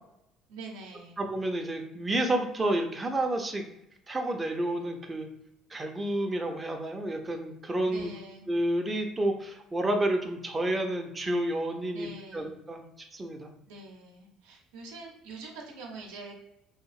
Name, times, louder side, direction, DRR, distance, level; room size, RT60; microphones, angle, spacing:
voice 1, 0.5-1.2 7.8-8.5 11.9-12.5 13.7-16.3, right 3 dB, 80° right, -1 dB, 0.6 m, -44 dB
voice 2, 1.2-3.6 4.1-5.3 5.7-8.1 8.5-12.8 13.1-13.5, right 1 dB, 20° right, 3 dB, 0.4 m, -30 dB
2.8 x 2.4 x 2.3 m, 0.82 s
hypercardioid pair, 65°, 0 cm